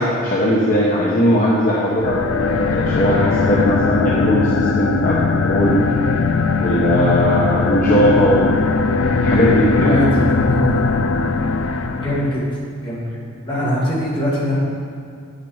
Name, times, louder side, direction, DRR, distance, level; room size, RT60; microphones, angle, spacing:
voice 1, 0.0-5.9 6.6-8.6 9.1-10.1, equal, 40° left, -6 dB, 1.0 m, -18 dB
sound 1, 1.9-12.4, left 4 dB, 65° left, 0.5 m, -19 dB
voice 2, 9.7-11.1 12.0-12.4 12.8-13.1 13.4-14.6, equal, 25° left, -7 dB, 2.2 m, -22 dB
8.4 x 6.7 x 4.8 m, 2.2 s
head